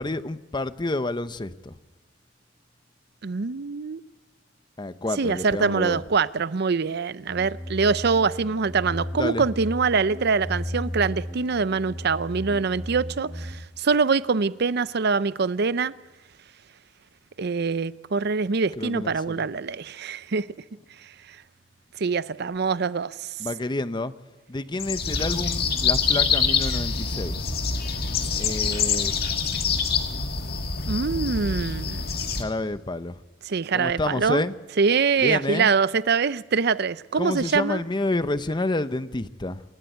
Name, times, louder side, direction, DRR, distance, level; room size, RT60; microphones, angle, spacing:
voice 1, 0.0-1.7 4.8-6.0 9.1-9.5 18.8-19.4 23.4-24.1 24.5-27.6 28.3-29.1 32.4-33.2 33.7-34.5 35.2-35.7 37.2-39.6, left 2 dB, 25° left, 0.8 m, -29 dB
voice 2, 3.2-4.0 5.2-15.9 17.4-20.5 22.0-23.3 30.9-32.0 33.5-34.4 34.8-37.8, right 5 dB, 60° right, 0.6 m, -24 dB
sound 1, 7.3-13.5, equal, 15° right, 2.4 m, -35 dB
sound 2, 24.8-32.4, left 5 dB, 55° left, 2.0 m, -25 dB
28.0 x 12.5 x 9.4 m
head